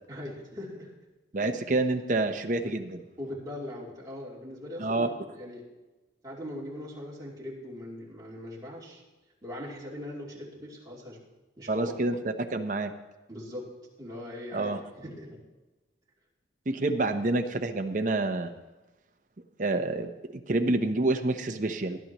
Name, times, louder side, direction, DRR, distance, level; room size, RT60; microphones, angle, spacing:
voice 1, 0.1-0.9 2.6-2.8 3.2-5.6 6.2-9.0 9.4-11.2 11.6-12.0 13.3-13.7 14.0-15.4, left 1 dB, 20° right, -5 dB, 3.0 m, -40 dB
voice 2, 1.3-2.8 4.8-5.1 11.7-12.9 14.5-14.8 16.7-18.5 19.6-22.0, right 2 dB, 45° right, 5 dB, 0.8 m, -28 dB
18.5 x 11.0 x 3.0 m, 1.1 s
head